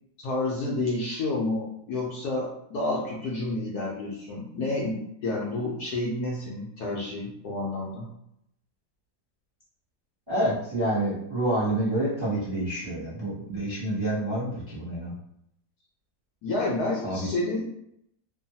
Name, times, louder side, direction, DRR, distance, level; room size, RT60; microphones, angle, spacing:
voice 1, 0.2-8.1 16.4-17.6, left 2 dB, 70° left, -4 dB, 1.0 m, -30 dB
voice 2, 10.3-15.1 17.0-17.3, right 1 dB, 20° right, -9 dB, 0.6 m, -28 dB
3.1 x 2.2 x 2.7 m, 0.75 s
omnidirectional pair, 2.0 m